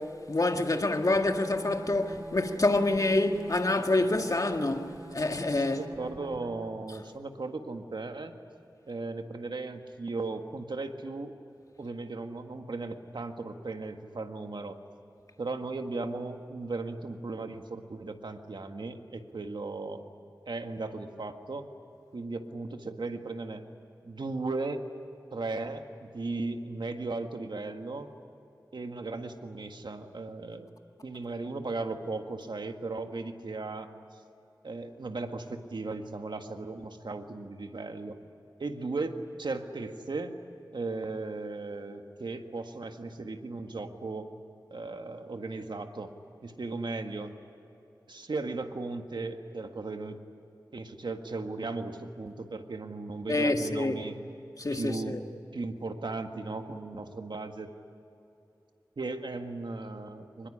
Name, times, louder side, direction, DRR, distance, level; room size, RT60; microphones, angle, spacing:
voice 1, 0.0-5.9 53.3-54.0 54.6-55.2, left 2 dB, 50° left, 1.9 m, -27 dB
sound 1, 1.1-6.9, right 1 dB, 35° right, 3.8 m, -46 dB
voice 2, 5.7-8.3 8.9-11.3 11.8-14.8 15.4-20.0 20.5-21.7 22.1-23.6 24.0-24.8 25.3-28.1 28.7-30.7 31.0-33.9 34.6-38.2 38.6-40.4 40.7-44.3 44.7-46.1 46.4-47.3 48.1-50.2 50.7-54.2 54.7-55.2 55.5-57.7 59.0-60.5, right 3 dB, 80° right, 1.7 m, -36 dB
24.0 x 21.0 x 10.0 m
wide cardioid pair, 60°, 8 cm